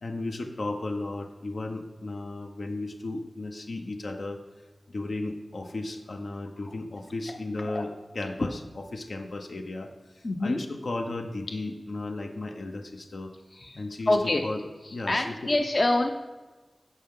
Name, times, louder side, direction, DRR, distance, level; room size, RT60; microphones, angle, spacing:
voice 1, 0.0-4.4 4.9-13.3 13.8-14.6 14.9-15.5, left 2 dB, 80° left, 4 dB, 0.9 m, -35 dB
voice 2, 10.2-10.6 13.5-14.4 14.8-16.1, left 2 dB, 50° left, 4 dB, 0.7 m, -26 dB
15.5 x 5.5 x 3.8 m, 1.2 s
wide cardioid pair, 80°, 0 cm